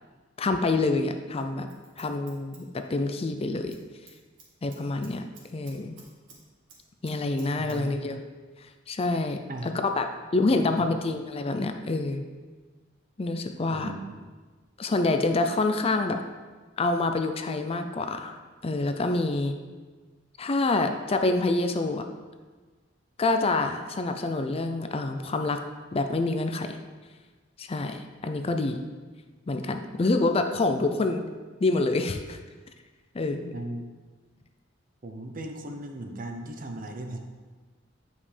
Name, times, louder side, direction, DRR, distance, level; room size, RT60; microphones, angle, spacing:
voice 1, 0.4-1.7 2.0-3.8 4.6-5.2 5.5-5.9 7.0-8.2 8.9-10.1 10.3-12.2 13.2-13.9 14.8-16.2 16.8-18.4 18.6-19.5 20.4-22.0 23.2-25.6 25.9-26.8 27.6-28.8 29.5-31.2 31.6-32.4 33.1-33.5, left 2 dB, 30° left, 6 dB, 0.4 m, -27 dB
Scissors, 1.4-3.3 3.6-3.8 4.1-6.4 6.7-7.8 8.0-8.1, right 4 dB, 70° right, 1.8 m, -53 dB
voice 2, 7.6-7.9 9.5-9.7 10.4-10.9 13.7-14.2 33.5-33.9 35.0-37.2, right 1 dB, 45° right, 4 dB, 0.8 m, -37 dB
9.4 x 5.3 x 3.3 m, 1.4 s
head